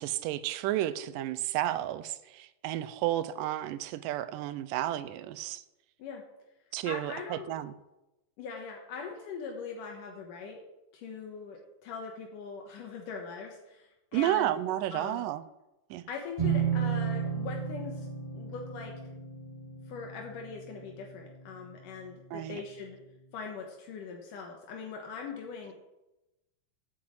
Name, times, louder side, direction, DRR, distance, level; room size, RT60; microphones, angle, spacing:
voice 1, 0.0-5.6 6.7-7.7 14.1-15.4 15.9-16.1 22.3-22.6, right 13 dB, 90° right, 14 dB, 2.2 m, -32 dB
voice 2, 6.9-7.5 8.4-10.6 10.9-14.5 14.9-15.2 16.1-18.1 18.3-18.9 19.9-23.0 23.3-25.7, left 5 dB, 75° left, 1 dB, 2.7 m, -41 dB
sound 1, 16.4-22.0, right 7 dB, 70° right, 0.3 m, -34 dB
8.7 x 7.8 x 7.6 m, 0.97 s
omnidirectional pair, 3.8 m